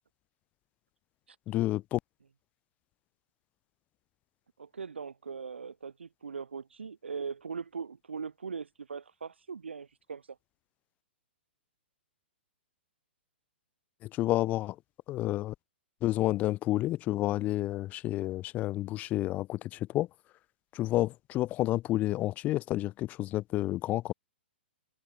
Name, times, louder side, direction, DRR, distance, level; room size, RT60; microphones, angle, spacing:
voice 1, 1.5-2.0 14.0-14.8 15.1-15.5 16.0-20.1 20.7-24.1, left 15 dB, 25° left, 0.4 m, -30 dB
voice 2, 4.6-10.4, right 5 dB, 80° right, 0.8 m, -40 dB
figure-of-eight pair, 115°, 6 cm